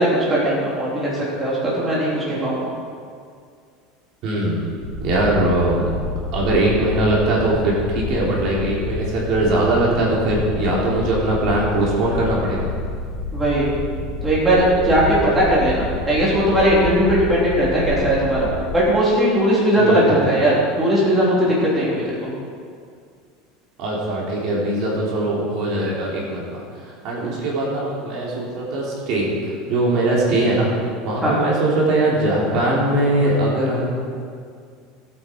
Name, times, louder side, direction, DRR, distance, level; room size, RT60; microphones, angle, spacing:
voice 1, 0.0-2.7 13.3-13.7 14.2-15.0 15.3-22.3 27.2-27.3 31.2-31.3, right 1 dB, 10° right, -7 dB, 3.5 m, -19 dB
voice 2, 4.2-4.6 5.0-5.9 6.3-12.7 19.8-20.2 23.8-33.9, right 1 dB, 45° right, -4 dB, 3.4 m, -21 dB
sound 1, 4.8-18.8, left 2 dB, 60° left, 2.1 m, -29 dB
19.0 x 8.7 x 4.6 m, 2.2 s
supercardioid pair, 160°, 0 cm